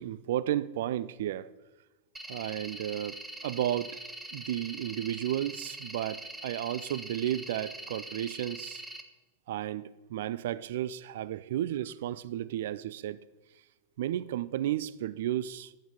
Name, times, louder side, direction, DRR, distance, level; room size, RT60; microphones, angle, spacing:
voice 1, 0.0-1.5 2.3-4.0 4.3-8.8 9.5-13.2 14.0-15.7, right 12 dB, 55° right, 0.5 m, -33 dB
sound 1, 2.2-9.0, right 1 dB, 5° right, 1.1 m, -43 dB
9.0 x 8.7 x 8.1 m
figure-of-eight pair, 90°, 0 cm